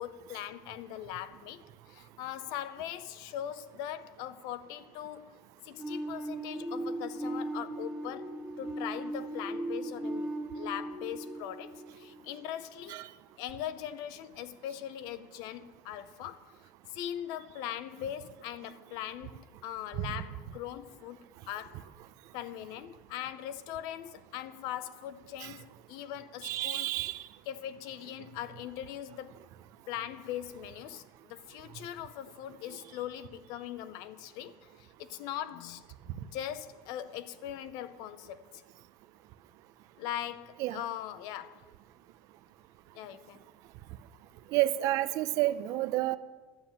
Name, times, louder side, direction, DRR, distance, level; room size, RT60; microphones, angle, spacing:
voice 1, 0.0-5.4 5.6-13.0 13.4-16.6 16.9-21.9 22.3-26.9 27.5-29.4 29.9-38.6 40.0-41.6 42.9-43.4, left 11 dB, 60° left, 0.7 m, -41 dB
sound 1, 5.8-12.5, right 1 dB, 5° right, 5.2 m, -38 dB
voice 2, 26.4-27.2 40.6-40.8 44.5-46.2, right 15 dB, 50° right, 0.5 m, -30 dB
12.0 x 7.6 x 8.8 m
cardioid pair, 175°, 8 cm